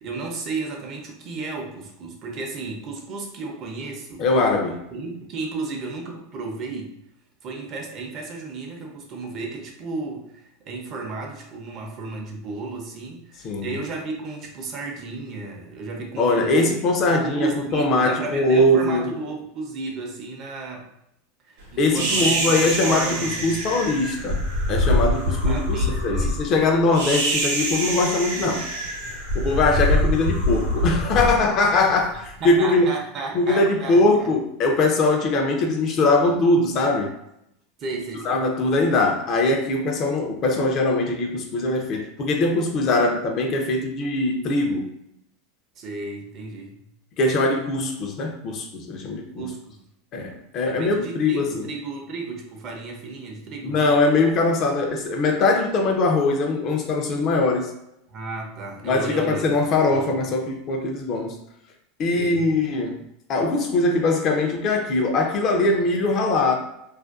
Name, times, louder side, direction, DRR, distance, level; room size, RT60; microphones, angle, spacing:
voice 1, 0.0-4.3 4.9-6.9 7.4-16.8 17.1-20.9 21.4-23.6 25.4-26.4 32.4-34.3 37.8-38.4 45.8-46.8 49.4-49.8 50.7-53.8 58.1-59.5 59.9-60.2 62.1-62.5, right 3 dB, 45° right, 1 dB, 0.6 m, -33 dB
voice 2, 4.2-4.9 13.4-13.8 16.2-19.1 21.8-28.7 29.3-32.9 33.3-37.1 38.2-44.9 47.2-49.5 50.1-51.5 53.6-57.7 58.8-61.4 62.0-63.0 63.3-66.5, left 2 dB, 45° left, 3 dB, 0.5 m, -21 dB
sound 1, 21.9-32.3, equal, 85° right, 0.8 m, -25 dB
2.4 x 2.2 x 2.4 m, 0.80 s
supercardioid pair, 115°, 0 cm